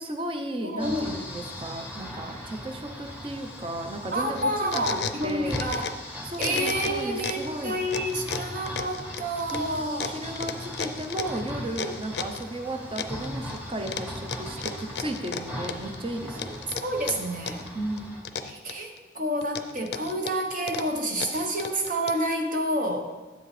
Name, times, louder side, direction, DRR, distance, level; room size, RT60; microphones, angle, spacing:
voice 1, 0.0-5.6 6.2-7.8 9.5-16.6 17.7-18.1, right 1 dB, 30° right, 5 dB, 0.7 m, -34 dB
voice 2, 0.6-1.2 4.1-5.9 6.4-10.1 12.8-12.9 16.4-17.7 18.5-23.0, right 1 dB, 50° right, 2 dB, 1.1 m, -29 dB
sound 1, 0.8-18.2, left 1 dB, 10° right, 1.3 m, -39 dB
sound 2, 4.4-6.1 6.3-7.5 7.9-12.5 13.0-13.6 13.9-16.0 16.4-17.7 18.0-19.0 19.4-22.3, left 6 dB, 70° left, 0.5 m, -34 dB
9.2 x 7.8 x 3.3 m, 1.2 s
head